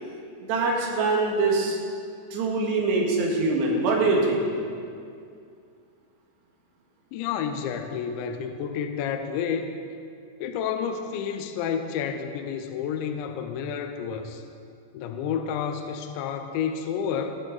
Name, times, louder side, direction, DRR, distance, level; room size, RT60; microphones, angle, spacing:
voice 1, 0.5-1.8 2.3-4.4, right 3 dB, 65° right, -1 dB, 3.6 m, -23 dB
voice 2, 7.1-9.7 10.4-14.4 14.9-17.4, left 7 dB, 80° left, 6 dB, 2.8 m, -30 dB
19.5 x 9.6 x 4.0 m, 2.4 s
omnidirectional pair, 5.6 m